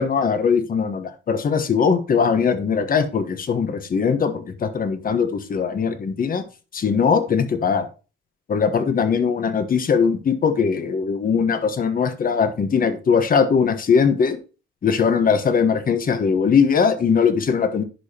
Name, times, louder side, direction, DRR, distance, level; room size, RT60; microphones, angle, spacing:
voice 1, 0.0-6.4 6.7-7.9 8.5-14.4 14.8-17.8, left 6 dB, 45° left, 9 dB, 1.3 m, -20 dB
10.5 x 5.0 x 2.9 m, 0.33 s
cardioid pair, 90°, 20 cm